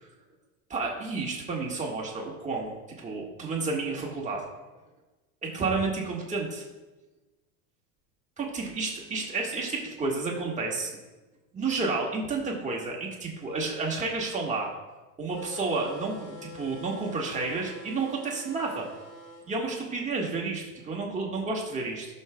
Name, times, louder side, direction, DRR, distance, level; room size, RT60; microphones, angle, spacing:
voice 1, 0.7-4.4 5.4-6.6 8.4-10.9 11.5-14.7 15.2-18.9 19.5-22.1, right 3 dB, 15° right, -2 dB, 1.6 m, -31 dB
sound 1, 15.3-19.5, left 2 dB, 45° left, 2.1 m, -46 dB
17.0 x 6.5 x 2.3 m, 1.1 s
supercardioid pair, 145°, 43 cm